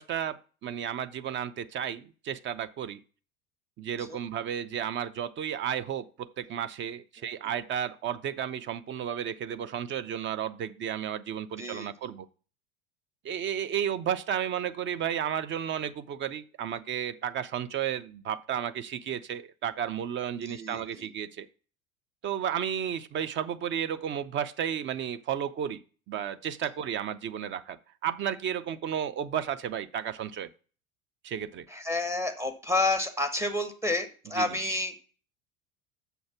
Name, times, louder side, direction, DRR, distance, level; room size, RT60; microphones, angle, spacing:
voice 1, 0.0-3.0 3.8-12.3 13.2-21.5 22.2-25.8 26.1-30.5 31.2-31.6 34.4-34.5, right 9 dB, 30° right, 0.6 m, -33 dB
voice 2, 11.6-12.1 20.5-21.1 31.7-35.0, left 2 dB, 5° right, 1.6 m, -30 dB
6.8 x 6.4 x 5.8 m
figure-of-eight pair, 75°, 42 cm